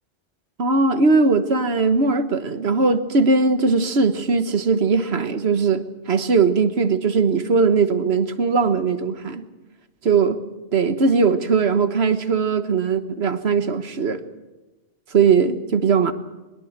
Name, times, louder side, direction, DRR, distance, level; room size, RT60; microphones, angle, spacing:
voice 1, 0.6-9.4 10.0-10.4 10.7-14.2 15.1-16.1, right 4 dB, 90° right, 10 dB, 1.6 m, -19 dB
22.0 x 21.5 x 7.3 m, 1.1 s
omnidirectional pair, 1.0 m